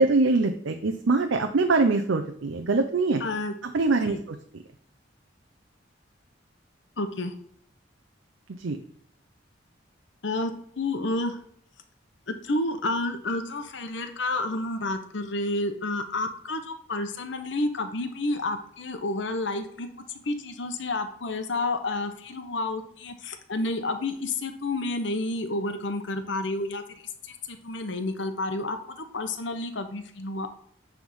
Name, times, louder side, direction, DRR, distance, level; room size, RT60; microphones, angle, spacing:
voice 1, 0.0-3.2 3.7-4.4 8.6-8.8, right 3 dB, 80° right, 5 dB, 0.6 m, -23 dB
voice 2, 3.2-3.5 4.0-4.2 7.0-7.3 10.2-11.4 12.3-19.9 20.2-26.8 27.2-28.8 29.1-30.5, left 2 dB, 75° left, 7 dB, 0.9 m, -30 dB
9.2 x 3.6 x 5.5 m, 0.65 s
head